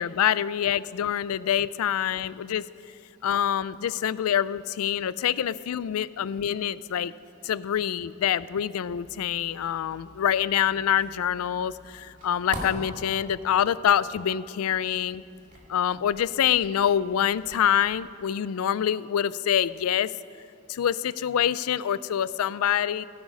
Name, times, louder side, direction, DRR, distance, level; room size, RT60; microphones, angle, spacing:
voice 1, 0.0-2.6 3.2-7.1 7.4-15.2 15.7-20.1 20.7-23.0, left 9 dB, 85° left, 18 dB, 0.4 m, -26 dB
sound 1, 8.8-18.1, equal, 40° right, 2.0 m, -45 dB
16.5 x 9.6 x 5.3 m, 2.5 s
head